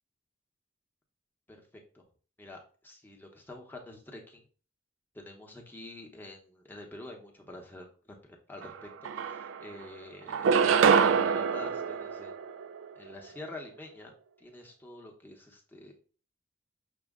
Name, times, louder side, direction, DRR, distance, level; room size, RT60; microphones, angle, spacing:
voice 1, 2.4-4.4 5.1-12.4 13.0-15.9, left 2 dB, 10° left, 0 dB, 0.7 m, -47 dB
sound 1, 8.6-8.7 9.0-9.8 10.3-12.9, right 6 dB, 85° right, 0.3 m, -25 dB
6.0 x 2.1 x 3.5 m, 0.41 s
head